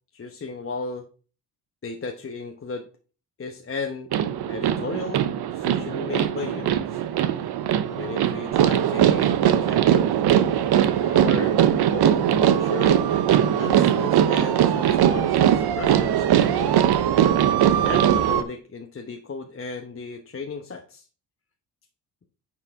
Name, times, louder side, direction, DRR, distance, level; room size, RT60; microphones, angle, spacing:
voice 1, 0.1-1.1 1.8-2.9 3.4-4.1 4.5-5.2 5.5-7.0 7.9-10.1 11.0-11.6 11.9-16.8 17.7-21.1, left 4 dB, 30° left, 3 dB, 1.0 m, -35 dB
sound 1, 4.1-18.4, right 10 dB, 65° right, 0.8 m, -20 dB
9.7 x 4.7 x 3.7 m, 0.38 s
supercardioid pair, 60°, 42 cm